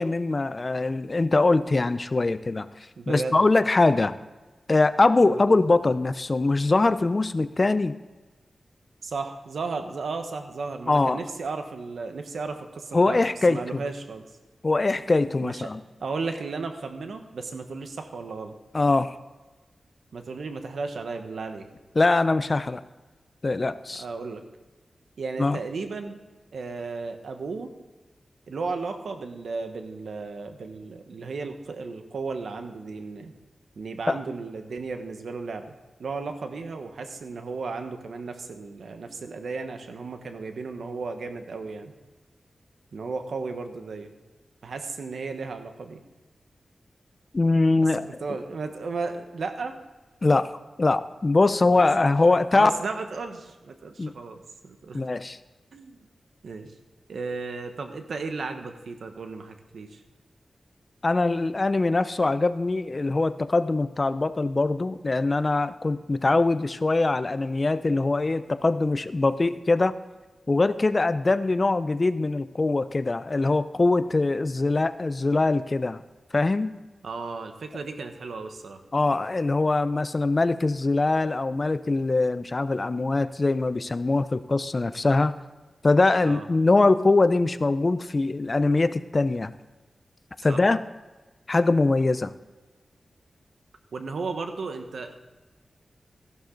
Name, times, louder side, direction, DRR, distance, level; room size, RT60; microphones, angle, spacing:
voice 1, 0.0-2.7 3.1-4.1 4.7-8.0 10.9-11.2 12.9-13.8 14.6-15.8 18.7-19.1 22.0-22.8 23.4-24.0 25.4-25.6 34.1-34.2 47.3-48.1 50.2-50.5 50.8-52.7 54.0-54.1 54.9-55.4 61.0-70.0 70.5-76.0 76.3-76.7 78.9-85.3 85.8-89.5 90.4-90.8 91.5-92.3, left 3 dB, 35° left, 13 dB, 0.5 m, -22 dB
voice 2, 3.0-3.4 5.2-5.4 9.0-13.2 13.5-14.3 15.4-15.7 16.0-18.5 20.1-21.7 24.0-24.4 25.2-26.2 26.5-27.7 28.5-33.3 33.8-35.7 36.0-41.9 42.9-44.1 44.6-46.0 47.7-49.8 51.7-52.1 52.5-55.1 55.7-56.1 56.4-56.7 57.1-60.0 77.0-78.8 86.2-86.4 90.5-90.6 93.9-95.1, right 4 dB, 85° right, 6 dB, 1.2 m, -34 dB
14.5 x 11.5 x 3.9 m, 1.2 s
wide cardioid pair, 115°, 0 cm